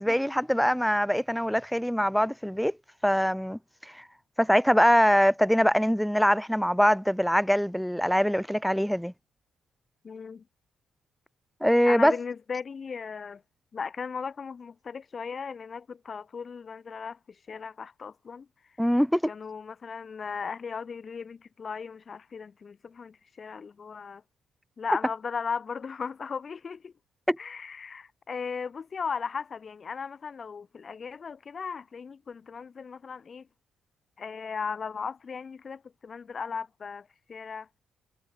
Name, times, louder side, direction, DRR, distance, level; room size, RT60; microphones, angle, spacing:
voice 1, 0.0-2.7 3.0-3.6 3.9-4.0 4.4-9.1 11.6-12.2 18.8-19.3 27.3-27.4, equal, ahead, 0.4 m, -23 dB
voice 2, 10.0-10.4 11.8-13.4 13.7-18.5 19.3-24.2 24.8-26.9 27.4-33.5 34.2-37.7, left 5 dB, 40° left, 1.5 m, -37 dB
cardioid pair, 90°, 0 cm